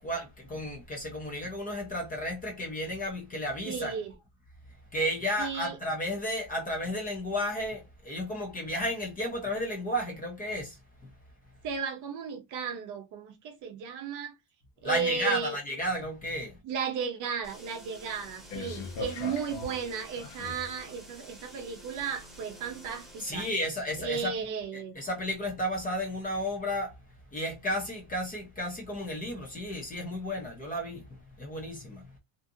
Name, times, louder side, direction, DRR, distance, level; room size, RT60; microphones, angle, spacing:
voice 1, 0.0-3.9 4.9-11.1 14.8-16.6 23.2-24.3 24.7-27.0 27.3-32.2, equal, 20° left, 0.5 m, -33 dB
voice 2, 3.7-4.1 5.4-5.8 11.6-14.4 14.8-15.6 16.6-23.5 24.0-25.0, right 6 dB, 40° right, 0.6 m, -34 dB
sound 1, 17.4-23.6, equal, ahead, 0.9 m, -50 dB
sound 2, 18.5-20.8 21.5-21.6, left 4 dB, 80° left, 0.8 m, -39 dB
2.6 x 2.4 x 2.6 m
cardioid pair, 170°, 46 cm